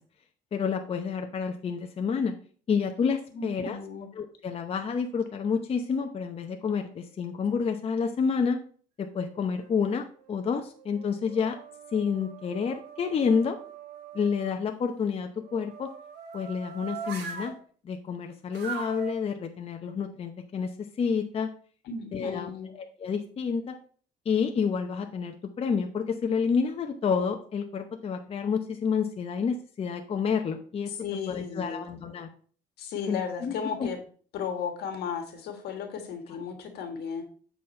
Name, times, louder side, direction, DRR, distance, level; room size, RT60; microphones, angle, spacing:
voice 1, 0.5-2.3 2.7-3.8 4.2-8.6 9.0-11.6 11.9-13.6 14.1-15.9 16.3-17.5 17.8-20.7 21.0-21.5 22.1-23.7 24.3-31.0 31.3-32.3 33.1-33.5 33.8-33.9, left 6 dB, 35° left, 4 dB, 0.8 m, -29 dB
voice 2, 3.3-4.1 21.8-22.7 31.0-31.9 32.8-34.0 34.3-37.2, left 6 dB, 75° left, 5 dB, 1.6 m, -35 dB
sound 1, 9.1-10.0 10.6-14.5 15.4-17.6 18.5-19.1, right 7 dB, 90° right, 1.1 m, -42 dB
7.6 x 4.2 x 4.2 m, 0.43 s
cardioid pair, 110°, 17 cm